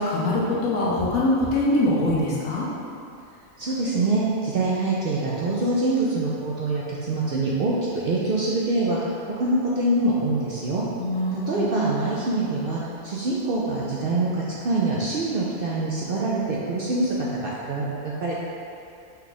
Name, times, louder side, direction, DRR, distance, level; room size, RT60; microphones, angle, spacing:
voice 1, 0.0-2.7 11.0-11.9, left 1 dB, 85° left, -5 dB, 1.3 m, -23 dB
voice 2, 3.6-10.8 11.3-18.4, right 2 dB, 65° right, -5 dB, 0.6 m, -25 dB
5.5 x 2.3 x 4.0 m, 2.5 s
omnidirectional pair, 1.4 m